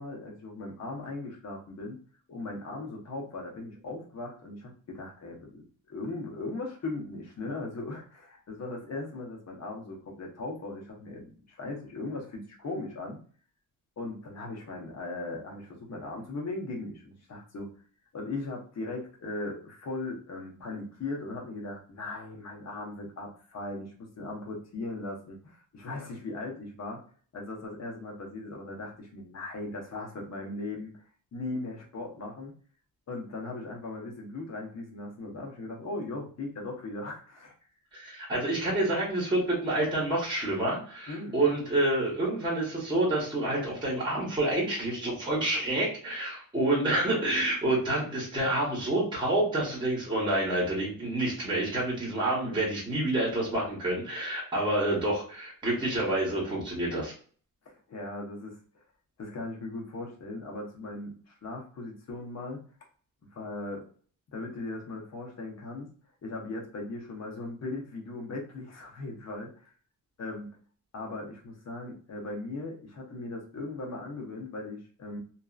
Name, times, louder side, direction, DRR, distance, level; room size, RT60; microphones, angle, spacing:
voice 1, 0.0-2.0 2.3-13.2 14.0-17.7 18.1-27.0 27.3-31.0 31.3-32.6 33.1-37.5 41.1-41.4 52.2-52.7 57.6-58.6 59.2-62.7 63.3-63.9 64.3-65.9 66.2-69.7 70.2-70.5 70.9-75.2, left 2 dB, 55° left, 1 dB, 0.9 m, -38 dB
voice 2, 37.9-57.1, right 1 dB, 15° right, -4 dB, 1.0 m, -28 dB
2.7 x 2.4 x 2.3 m, 0.44 s
wide cardioid pair, 160°, 33 cm